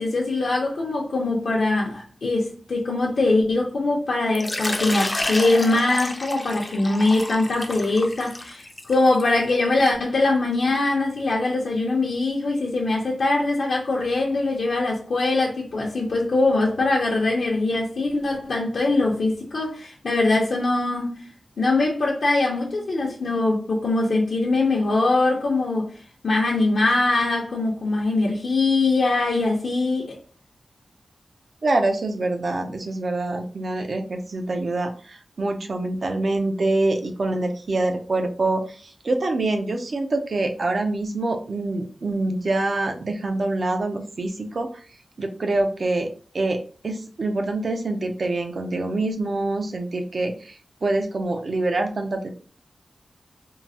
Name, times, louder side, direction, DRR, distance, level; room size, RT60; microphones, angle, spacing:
voice 1, 0.0-21.3 21.6-26.0 26.2-30.2, left 2 dB, 75° left, 0.7 m, -22 dB
Water / Liquid, 4.3-9.9, left 1 dB, 25° left, 0.4 m, -30 dB
voice 2, 31.6-44.8 45.2-46.1 46.3-46.6 46.8-52.3, right 2 dB, 55° right, 0.5 m, -25 dB
3.7 x 2.0 x 2.7 m
wide cardioid pair, 125°, 0 cm